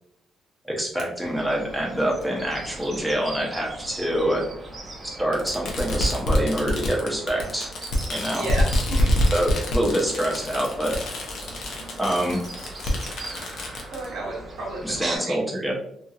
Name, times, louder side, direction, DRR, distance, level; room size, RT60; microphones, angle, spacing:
voice 1, 0.6-4.4 5.0-7.7 8.1-8.5 9.3-10.9 12.0-12.4 14.8-15.7, right 1 dB, ahead, -3 dB, 0.8 m, -26 dB
Fireworks, 1.0-1.1 2.2-2.3 3.6-3.7 5.3-14.1, left 1 dB, 70° left, 0.7 m, -26 dB
sound 1, 1.2-15.2, right 2 dB, 35° right, 0.7 m, -39 dB
voice 2, 8.3-9.2 11.7-11.9 13.9-15.7, right 2 dB, 85° right, -3 dB, 1.0 m, -33 dB
2.8 x 2.7 x 2.3 m, 0.71 s
cardioid pair, 90°, 0 cm